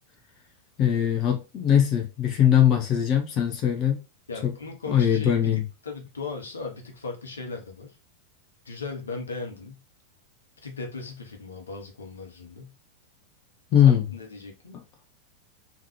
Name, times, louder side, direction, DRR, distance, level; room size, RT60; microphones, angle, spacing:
voice 1, 0.8-4.0 4.4-4.5 4.9-5.6 13.7-14.1, left 9 dB, 35° left, 0.7 m, -21 dB
voice 2, 4.3-7.9 8.6-9.8 10.6-12.7 13.9-14.8, left 4 dB, 70° left, 1.0 m, -37 dB
3.7 x 3.1 x 3.1 m
figure-of-eight pair, 90°, 0 cm